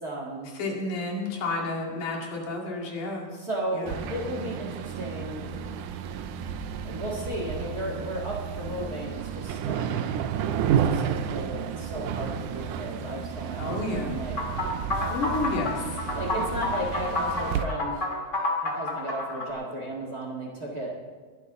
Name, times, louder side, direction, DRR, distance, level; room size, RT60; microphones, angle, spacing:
voice 1, 0.0-0.5 3.3-5.5 6.8-10.1 10.8-14.4 16.1-18.0 18.6-21.1, right 1 dB, 35° right, -1 dB, 1.8 m, -34 dB
voice 2, 0.6-3.3 3.7-4.1 13.6-14.1 15.1-16.0, left 2 dB, 75° left, -1 dB, 3.8 m, -31 dB
sound 1, 3.9-17.6, right 8 dB, 80° right, 2.2 m, -31 dB
sound 2, 14.4-19.5, left 2 dB, 25° left, 2.0 m, -29 dB
22.0 x 11.5 x 3.8 m, 1.5 s
omnidirectional pair, 3.6 m